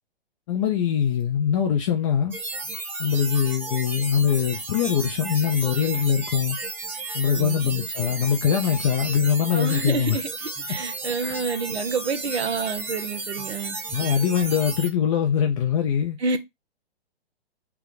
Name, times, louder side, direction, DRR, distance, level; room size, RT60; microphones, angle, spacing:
voice 1, 0.5-2.4 3.0-6.6 7.1-10.2 11.2-11.4 13.9-16.2, left 8 dB, 30° left, 0.5 m, -23 dB
sound 1, 2.3-14.9, right 3 dB, 5° right, 0.7 m, -33 dB
voice 2, 7.3-7.9 9.5-13.8 16.2-16.4, right 4 dB, 85° right, 0.9 m, -28 dB
3.4 x 2.2 x 3.7 m
hypercardioid pair, 125°, 32 cm